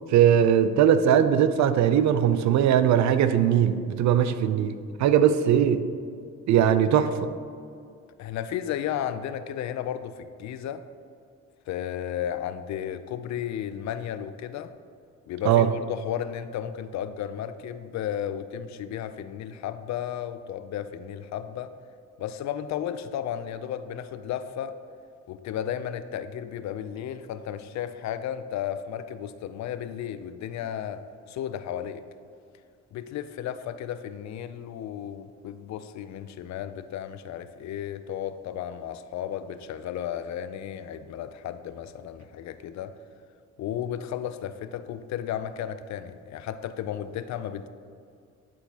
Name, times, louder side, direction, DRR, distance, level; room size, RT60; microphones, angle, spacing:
voice 1, 0.1-5.9 6.5-7.3 15.5-15.7, right 9 dB, 70° right, 11 dB, 0.5 m, -20 dB
voice 2, 8.2-10.8 11.7-14.7 15.3-21.7 22.2-24.8 25.3-32.0 32.9-43.0 43.6-47.7, left 10 dB, 65° left, 12 dB, 0.4 m, -34 dB
10.5 x 3.9 x 2.8 m, 2.3 s
cardioid pair, 90°, 30 cm